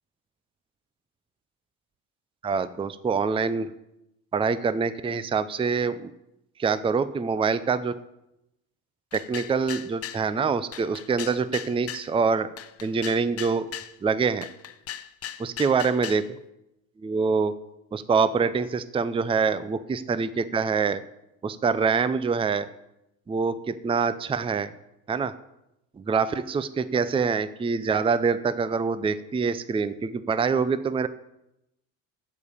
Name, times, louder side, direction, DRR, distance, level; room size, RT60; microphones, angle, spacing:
voice 1, 2.4-3.7 4.3-6.1 6.6-7.9 9.1-12.5 12.8-13.7 14.0-14.5 15.4-16.4 17.0-17.5 17.9-21.0 21.4-22.7 23.3-24.7 25.1-25.3 26.0-31.1, right 5 dB, 15° right, 14 dB, 0.5 m, -25 dB
sound 1, 9.1-10.2 10.7-12.1 12.6-13.9 14.4-16.3, left 10 dB, 35° left, 0.7 m, -38 dB
14.5 x 5.2 x 8.3 m, 0.87 s
supercardioid pair, 85°, 43 cm